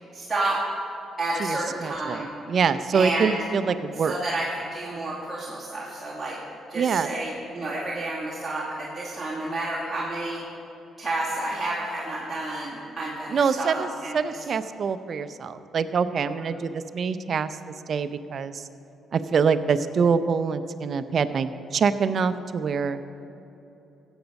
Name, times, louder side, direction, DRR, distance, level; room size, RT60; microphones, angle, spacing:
voice 1, 0.1-0.6 1.2-2.3 2.9-3.3 4.1-6.4 6.7-10.4 11.0-14.2, right 2 dB, 20° right, -8 dB, 2.5 m, -30 dB
voice 2, 1.4-2.2 2.5-4.1 6.7-7.1 13.3-17.5 17.9-18.6 19.1-23.0, right 6 dB, 50° right, 11 dB, 0.6 m, -25 dB
15.0 x 8.1 x 5.3 m, 3.0 s
cardioid pair, 90°, 0 cm